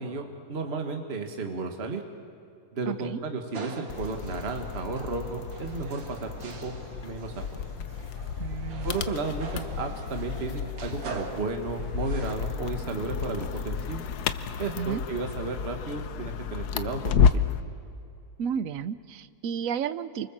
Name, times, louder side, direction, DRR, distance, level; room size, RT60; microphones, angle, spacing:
voice 1, 0.0-2.0 2.7-6.7 7.0-7.9 8.8-14.1 14.6-17.4, right 3 dB, 35° right, 4 dB, 1.9 m, -33 dB
voice 2, 2.9-3.2 8.4-8.9 14.8-15.0 18.4-20.3, right 7 dB, 55° right, 13 dB, 1.0 m, -32 dB
sound 1, 3.5-12.4, right 5 dB, 75° right, 2.6 m, -44 dB
sound 2, 3.9-17.6, left 7 dB, 65° left, 1.3 m, -31 dB
28.5 x 25.0 x 7.4 m, 2.5 s
omnidirectional pair, 2.0 m